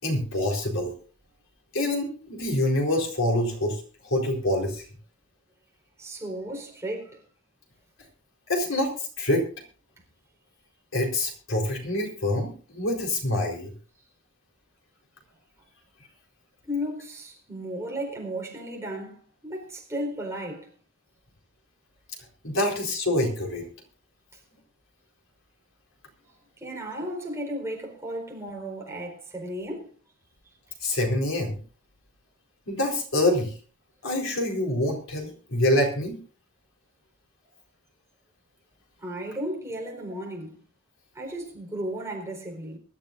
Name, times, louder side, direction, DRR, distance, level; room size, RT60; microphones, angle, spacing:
voice 1, 0.0-0.9 1.7-4.8 8.5-9.4 10.9-13.7 22.4-23.7 30.8-31.6 32.7-33.5 34.0-36.2, left 1 dB, 75° left, 4.3 m, -26 dB
voice 2, 6.0-7.2 16.6-20.7 26.6-29.9 39.0-40.6 41.1-42.8, equal, 15° right, 4.4 m, -34 dB
23.5 x 12.5 x 2.6 m
head